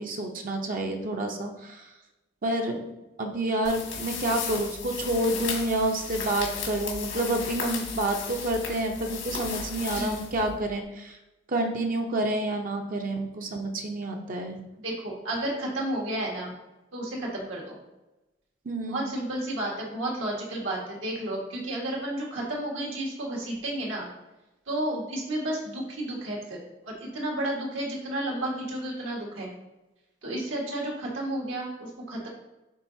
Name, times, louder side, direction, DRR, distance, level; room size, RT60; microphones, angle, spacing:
voice 1, 0.0-1.9 2.4-2.8 3.2-11.2 11.5-14.6 18.6-19.1, right 1 dB, 45° right, 3 dB, 0.7 m, -29 dB
sound 1, 3.6-10.8, left 5 dB, 85° left, 1.8 m, -35 dB
voice 2, 14.8-16.5 16.9-17.8 18.8-24.1 24.7-26.6 26.9-29.5 30.2-32.3, right 1 dB, 80° right, -2 dB, 1.8 m, -32 dB
10.0 x 3.9 x 2.7 m, 1.0 s
head